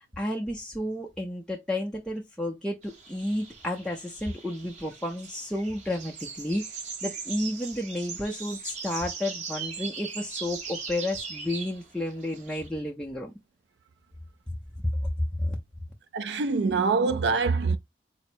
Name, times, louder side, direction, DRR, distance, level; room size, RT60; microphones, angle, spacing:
voice 1, 0.2-13.3 15.4-15.6, left 1 dB, 5° left, 0.5 m, -32 dB
sound 1, 2.8-12.7, right 5 dB, 40° right, 0.9 m, -40 dB
voice 2, 16.1-17.8, right 4 dB, 70° right, 0.4 m, -24 dB
4.1 x 2.0 x 4.3 m
head